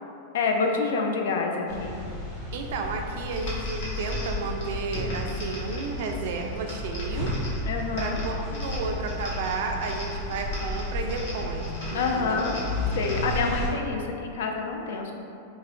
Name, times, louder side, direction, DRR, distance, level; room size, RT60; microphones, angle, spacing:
voice 1, 0.3-2.0 7.7-8.2 11.9-12.6 12.9-15.1, left 4 dB, 80° left, 2 dB, 0.4 m, -27 dB
sound 1, 1.7-13.7, left 1 dB, 35° left, 0.8 m, -33 dB
voice 2, 2.5-7.3 8.0-12.5, right 4 dB, 65° right, 3 dB, 0.3 m, -32 dB
sound 2, 3.3-13.6, left 1 dB, 65° left, 0.9 m, -41 dB
4.6 x 2.1 x 2.4 m, 2.6 s
supercardioid pair, 155°, 0 cm